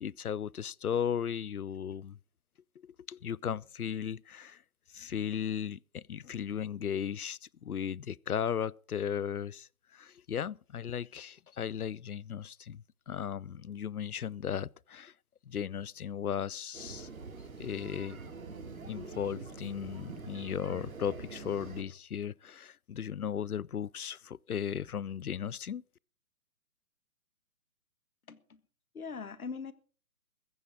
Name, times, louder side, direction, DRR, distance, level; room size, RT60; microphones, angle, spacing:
voice 1, 0.0-2.2 2.8-4.6 4.9-15.1 15.5-17.1 17.6-18.2 18.9-25.8, left 8 dB, 90° left, 0.6 m, -36 dB
sound 1, 16.7-21.8, right 4 dB, 70° right, 3.2 m, -45 dB
voice 2, 28.3-28.6 28.9-29.7, left 5 dB, 75° left, 1.6 m, -41 dB
15.0 x 12.5 x 5.0 m
figure-of-eight pair, 135°, 43 cm